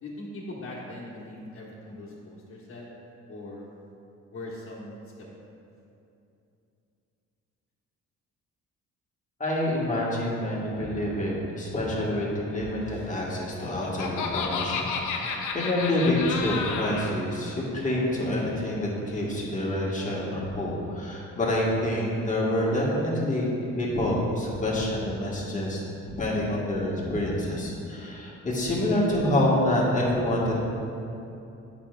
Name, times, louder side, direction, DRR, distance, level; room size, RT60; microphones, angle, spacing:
voice 1, 0.0-2.9 3.3-3.7 4.3-5.3, left 1 dB, 45° left, -6 dB, 1.4 m, -40 dB
voice 2, 9.4-23.5 23.7-25.8 26.2-30.5, left 1 dB, 25° left, -5 dB, 1.6 m, -27 dB
Laughter, 13.4-17.1, left 5 dB, 85° left, 0.7 m, -31 dB
8.7 x 6.1 x 2.4 m, 2.7 s
cardioid pair, 90°, 30 cm